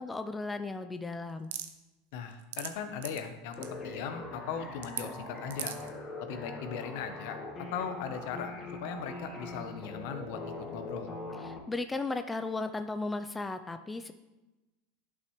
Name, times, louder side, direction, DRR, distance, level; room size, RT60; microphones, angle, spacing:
voice 1, 0.0-1.5 11.4-14.1, left 3 dB, 10° left, 8 dB, 0.4 m, -35 dB
sound 1, 1.5-1.7 2.3-2.7 3.0-3.2 3.5-3.7 4.8-5.0 5.5-5.9, right 11 dB, 80° right, 0.6 m, -37 dB
voice 2, 2.1-3.6 3.8-5.8 6.2-10.4 10.7-11.1, left 7 dB, 70° left, 8 dB, 0.9 m, -38 dB
sound 2, 3.6-11.6, left 2 dB, 30° left, 1.7 m, -42 dB
11.0 x 5.7 x 3.1 m, 1.1 s
supercardioid pair, 110°, 0 cm